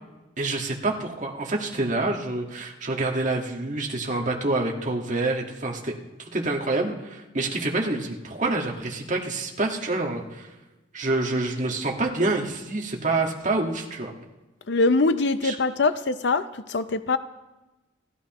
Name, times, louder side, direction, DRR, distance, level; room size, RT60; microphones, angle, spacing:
voice 1, 0.4-5.9 6.3-10.5 10.9-14.1 15.4-15.5, right 2 dB, 40° right, 0 dB, 1.7 m, -27 dB
voice 2, 14.7-17.2, left 3 dB, 60° left, 12 dB, 0.6 m, -23 dB
29.5 x 12.5 x 3.0 m, 1.1 s
head